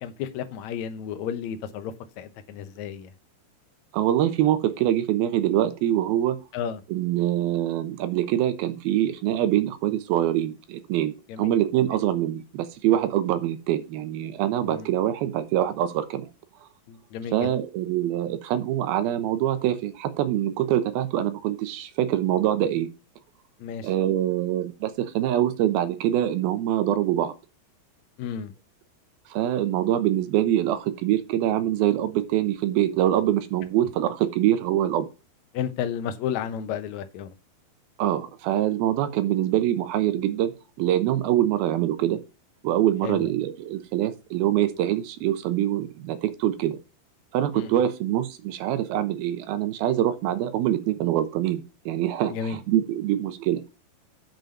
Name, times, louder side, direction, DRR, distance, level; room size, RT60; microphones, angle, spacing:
voice 1, 0.0-3.1 6.5-6.8 11.3-11.6 14.6-14.9 16.9-17.5 23.6-23.9 28.2-28.5 35.5-37.3 43.0-43.3 47.5-47.7 52.3-52.6, left 8 dB, 70° left, 9 dB, 1.9 m, -32 dB
voice 2, 3.9-6.4 6.9-16.3 17.3-22.9 23.8-27.3 29.3-35.1 38.0-40.5 40.8-42.2 42.6-46.8 47.3-53.7, right 12 dB, 90° right, 11 dB, 2.8 m, -24 dB
7.4 x 5.3 x 6.4 m, 0.30 s
omnidirectional pair, 4.2 m